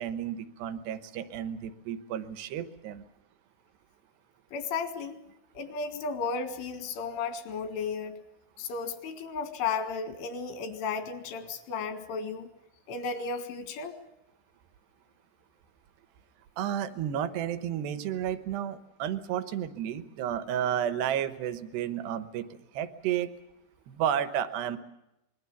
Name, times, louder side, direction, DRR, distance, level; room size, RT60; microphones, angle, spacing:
voice 1, 0.0-3.0 16.6-22.5 22.7-23.3 23.9-24.8, right 10 dB, 70° right, 12 dB, 2.9 m, -32 dB
voice 2, 4.5-5.2 5.6-8.2 8.6-12.5 12.9-13.9, left 5 dB, 85° left, 9 dB, 4.3 m, -34 dB
25.0 x 21.0 x 7.1 m, 0.88 s
omnidirectional pair, 5.5 m